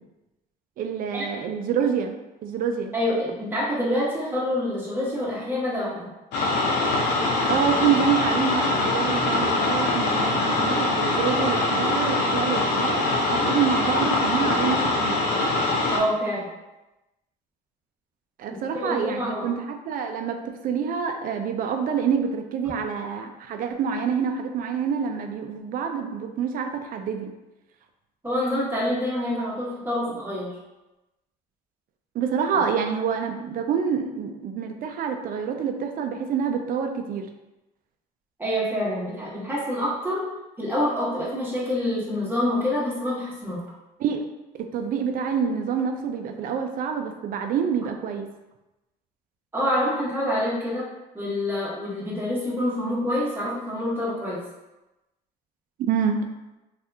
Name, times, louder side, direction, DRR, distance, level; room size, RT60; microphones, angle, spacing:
voice 1, 0.8-2.1 2.4-2.9 7.4-15.2 18.4-20.4 20.6-27.3 32.1-37.3 44.0-44.2 44.5-48.3 55.9-56.2, right 7 dB, 55° right, 5 dB, 0.4 m, -27 dB
voice 2, 2.9-6.1 15.9-16.5 18.5-19.5 28.2-30.6 38.4-40.2 40.6-43.6 49.5-50.9 51.1-54.4, left 1 dB, 10° right, -7 dB, 1.1 m, -26 dB
sound 1, 6.3-16.0, left 2 dB, 85° left, 0.7 m, -23 dB
2.7 x 2.4 x 3.4 m, 1.0 s
cardioid pair, 110°, 17 cm